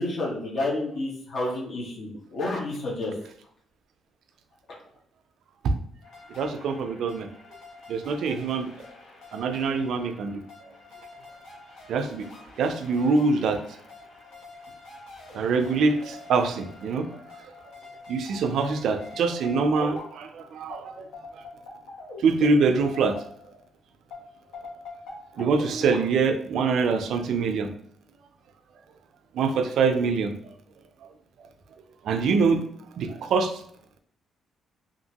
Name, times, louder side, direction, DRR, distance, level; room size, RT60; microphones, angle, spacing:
voice 1, 0.0-3.2, left 2 dB, 60° left, -3 dB, 1.0 m, -30 dB
sound 1, 6.0-23.7 24.1-26.0, left 3 dB, 90° left, 0.9 m, -45 dB
voice 2, 6.4-7.3 7.9-8.7 9.3-10.4 11.9-12.3 12.6-13.6 15.3-17.1 18.1-21.0 21.3-21.4 22.2-23.2 25.4-27.7 29.3-30.3 32.0-32.6 33.0-33.5, right 4 dB, 75° right, 8 dB, 0.3 m, -24 dB
2.9 x 2.5 x 2.8 m, 0.64 s
cardioid pair, 90°, 0 cm